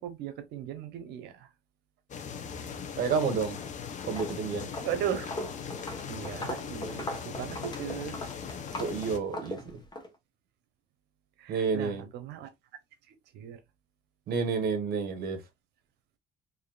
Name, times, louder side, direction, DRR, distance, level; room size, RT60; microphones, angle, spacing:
voice 1, 0.0-1.5 4.8-5.3 6.1-8.2 11.4-12.5 13.3-13.6, right 9 dB, 85° right, 0.9 m, -37 dB
sound 1, 2.1-9.2, left 6 dB, 45° left, 0.8 m, -40 dB
voice 2, 3.0-3.6 4.1-4.7 8.8-9.7 11.5-12.1 14.3-15.4, right 5 dB, 65° right, 1.3 m, -30 dB
Walk footsteps, 3.4-3.7 4.0-10.1, left 1 dB, 25° left, 1.2 m, -40 dB
5.0 x 2.8 x 2.3 m
cardioid pair, 110°, 17 cm